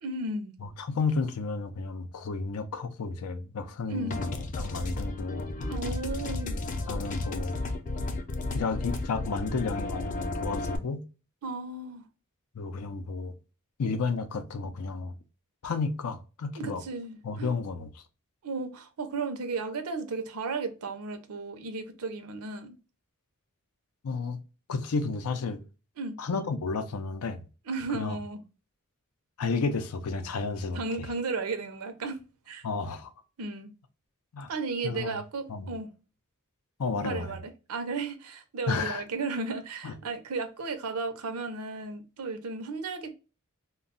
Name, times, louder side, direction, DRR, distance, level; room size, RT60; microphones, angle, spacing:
voice 1, 0.0-0.5 3.9-4.2 5.7-6.6 11.4-12.0 16.6-17.5 18.4-22.8 26.0-26.1 27.7-28.4 30.7-32.7 33.4-33.7 34.5-35.9 37.0-43.1, right 3 dB, 80° right, 0.6 m, -34 dB
voice 2, 0.6-5.5 6.9-7.6 8.5-11.0 12.5-13.3 13.8-15.1 15.6-16.8 17.2-18.0 24.0-24.4 24.7-25.6 26.2-27.4 27.9-28.2 29.4-31.1 32.6-33.1 34.3-34.5 34.8-35.2 35.5-35.7 36.8-37.4 38.7-39.0 39.8-40.0, left 4 dB, 90° left, 0.5 m, -32 dB
sound 1, 4.1-10.8, left 2 dB, 35° left, 0.4 m, -33 dB
2.2 x 2.0 x 3.6 m
head